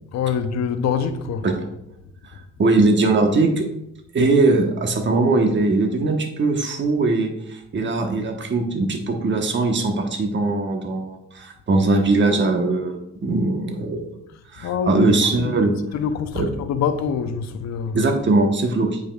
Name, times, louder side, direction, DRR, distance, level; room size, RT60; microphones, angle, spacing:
voice 1, 0.1-1.5 14.6-15.1 15.4-15.5 15.9-18.0, left 7 dB, 60° left, 0.7 m, -25 dB
voice 2, 2.6-3.6 4.1-14.2 14.5-15.7 16.3-16.5 17.9-19.0, right 3 dB, 40° right, 1.1 m, -20 dB
8.3 x 5.1 x 2.3 m
cardioid pair, 90°, 30 cm